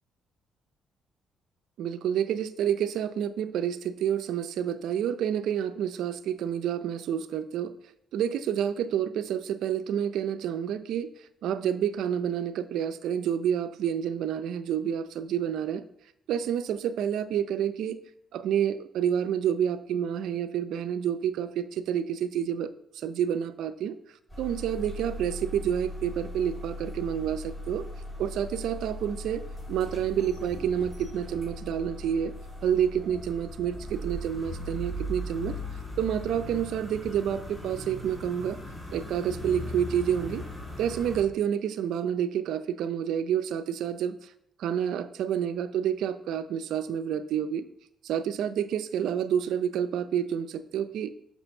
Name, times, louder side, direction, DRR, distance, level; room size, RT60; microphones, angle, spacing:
voice 1, 1.8-7.8 8.1-11.1 11.4-15.8 16.3-18.0 18.3-24.0 24.4-27.9 28.2-32.3 32.6-35.6 36.0-38.6 38.9-40.4 40.8-44.3 44.6-47.7 48.0-51.1, right 9 dB, 80° right, 12 dB, 0.5 m, -29 dB
sound 1, 24.3-41.2, left 1 dB, 15° left, 3.4 m, -39 dB
7.1 x 6.0 x 5.4 m, 0.74 s
cardioid pair, 90°, 0 cm